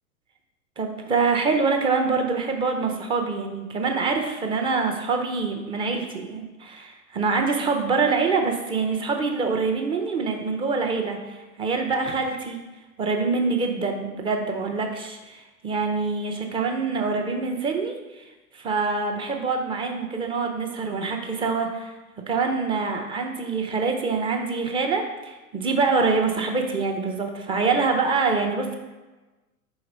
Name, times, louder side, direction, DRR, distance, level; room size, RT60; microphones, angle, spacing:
voice 1, 0.8-12.6 13.0-21.9 22.3-28.7, right 4 dB, 10° right, 3 dB, 0.5 m, -25 dB
4.8 x 4.2 x 5.3 m, 1.2 s
hypercardioid pair, 105°, 44 cm